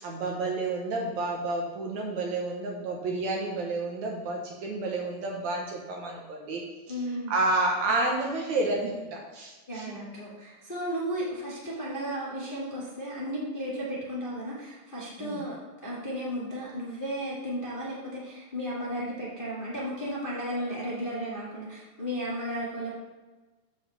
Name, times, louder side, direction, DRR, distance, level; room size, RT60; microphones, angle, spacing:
voice 1, 0.0-6.6 7.3-10.0 15.2-15.4, right 2 dB, 65° right, -1 dB, 2.2 m, -30 dB
voice 2, 6.9-7.3 9.7-15.6 15.8-23.0, equal, 20° left, -7 dB, 1.3 m, -34 dB
7.4 x 4.8 x 7.1 m, 1.2 s
omnidirectional pair, 4.0 m